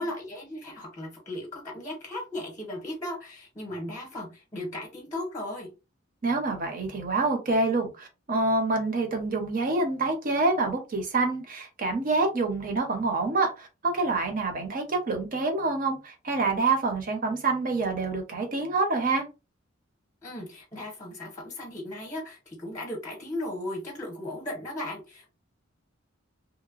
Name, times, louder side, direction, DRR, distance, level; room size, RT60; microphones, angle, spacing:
voice 1, 0.0-5.7 20.2-25.3, left 1 dB, 15° left, 0.8 m, -36 dB
voice 2, 6.2-13.7 13.9-19.2, right 3 dB, 45° right, 0.7 m, -27 dB
2.9 x 2.1 x 2.4 m
head